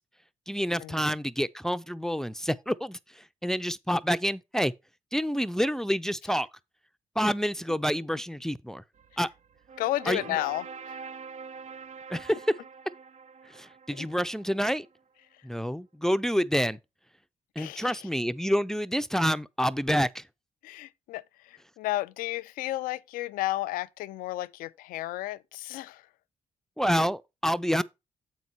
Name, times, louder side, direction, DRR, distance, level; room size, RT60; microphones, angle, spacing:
voice 1, 0.5-4.7 5.1-6.5 7.2-8.8 9.2-9.3 10.1-10.4 12.1-12.5 13.5-14.9 15.4-16.8 17.6-20.2 26.8-27.8, equal, 5° left, 0.5 m, -28 dB
sound 1, 9.0-14.9, right 5 dB, 60° right, 0.6 m, -45 dB
voice 2, 9.8-11.0 13.9-14.1 17.6-18.1 20.6-26.1, left 16 dB, 85° left, 0.4 m, -33 dB
7.8 x 5.4 x 4.5 m
supercardioid pair, 55°, 14 cm